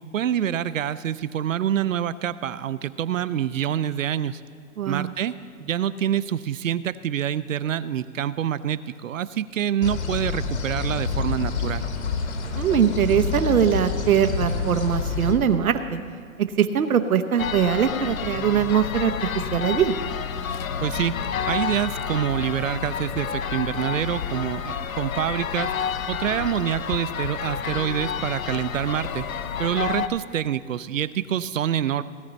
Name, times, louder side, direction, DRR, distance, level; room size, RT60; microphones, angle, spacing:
voice 1, 0.1-4.4 4.8-5.3 5.6-11.8 20.8-21.2 21.5-25.7 26.1-29.2 29.6-32.0, right 10 dB, 65° right, 16 dB, 0.6 m, -26 dB
voice 2, 4.8-5.1 12.6-16.0 16.6-19.1 19.5-19.9, right 8 dB, 90° right, 8 dB, 1.0 m, -21 dB
sound 1, 9.8-15.3, left 4 dB, 55° left, 1.3 m, -28 dB
sound 2, 17.4-30.1, left 7 dB, 75° left, 0.8 m, -30 dB
18.0 x 9.6 x 4.0 m, 2.2 s
hypercardioid pair, 180°, 41 cm